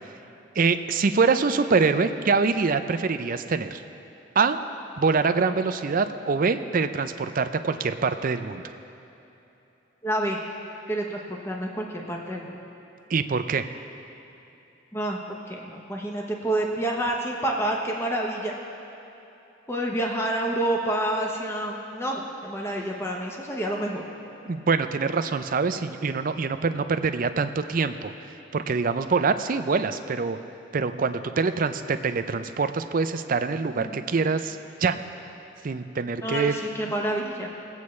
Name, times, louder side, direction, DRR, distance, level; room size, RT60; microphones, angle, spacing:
voice 1, 0.6-3.8 4.4-4.6 5.0-8.7 13.1-13.6 24.5-28.1 28.5-30.4 30.7-35.0 35.6-36.5, right 4 dB, 45° right, 10 dB, 0.5 m, -24 dB
voice 2, 10.0-10.4 10.9-12.6 14.9-18.5 19.7-24.0 33.7-34.0 36.2-37.5, right 1 dB, 15° left, 0 dB, 0.9 m, -28 dB
20.5 x 8.2 x 3.2 m, 3.0 s
head